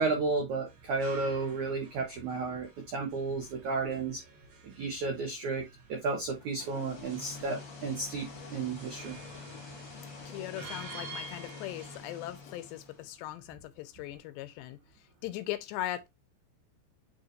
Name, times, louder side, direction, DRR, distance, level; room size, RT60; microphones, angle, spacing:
voice 1, 0.0-4.2 4.6-5.6 5.9-9.2, right 3 dB, 85° right, 1.7 m, -32 dB
sound 1, 0.7-12.0, right 3 dB, 65° right, 3.9 m, -51 dB
sound 2, 6.4-13.2, left 4 dB, 50° left, 1.3 m, -47 dB
voice 2, 10.3-14.8 15.2-16.1, left 14 dB, 80° left, 2.8 m, -39 dB
9.3 x 4.3 x 2.6 m
omnidirectional pair, 5.2 m